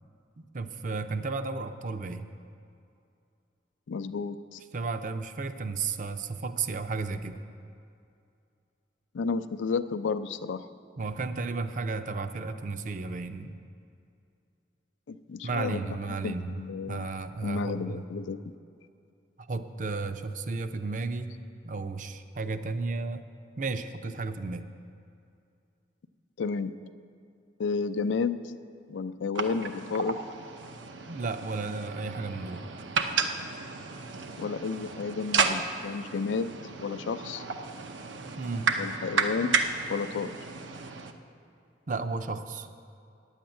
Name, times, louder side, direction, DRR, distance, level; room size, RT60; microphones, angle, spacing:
voice 1, 0.4-2.3 4.7-7.4 11.0-13.5 15.4-16.5 16.9-18.1 19.5-21.3 21.6-23.2 23.6-24.7 31.1-32.6 38.4-38.7 41.9-42.7, right 4 dB, 45° right, 10 dB, 0.5 m, -33 dB
voice 2, 3.9-4.6 9.1-10.7 15.1-15.8 16.2-17.1 17.4-18.4 26.4-26.7 27.6-28.4 28.9-30.2 34.4-36.5 36.8-37.4 38.7-39.6 39.9-40.3, left 5 dB, 85° left, 12 dB, 0.4 m, -31 dB
sound 1, 29.3-41.1, right 4 dB, 90° right, 0.7 m, -32 dB
9.4 x 7.3 x 9.0 m, 2.5 s
head